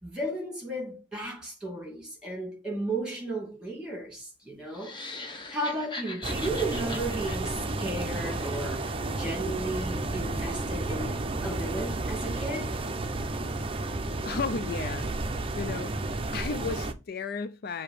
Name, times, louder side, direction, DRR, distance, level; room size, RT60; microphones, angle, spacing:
voice 1, 0.0-4.9 5.2-12.7 13.6-13.7, right 1 dB, 5° right, 2.4 m, -34 dB
sound 1, 4.7-8.9, left 2 dB, 25° left, 1.0 m, -41 dB
sound 2, 6.2-16.9, right 2 dB, 30° right, 0.6 m, -32 dB
voice 2, 14.3-15.1 15.6-17.8, left 4 dB, 55° left, 0.4 m, -34 dB
6.9 x 2.8 x 4.9 m
head